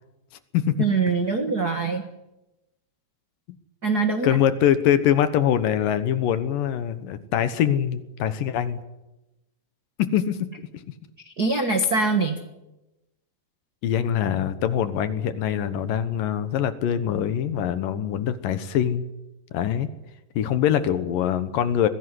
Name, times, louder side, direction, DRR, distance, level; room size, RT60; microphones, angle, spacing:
voice 1, 0.8-2.1 3.8-4.4 11.2-12.4, right 3 dB, 55° right, 6 dB, 1.1 m, -23 dB
voice 2, 4.2-8.8 10.0-10.4 13.8-19.0 19.5-19.9 20.4-21.9, left 10 dB, 70° left, 12 dB, 2.7 m, -23 dB
22.0 x 16.0 x 9.9 m, 0.97 s
omnidirectional pair, 4.4 m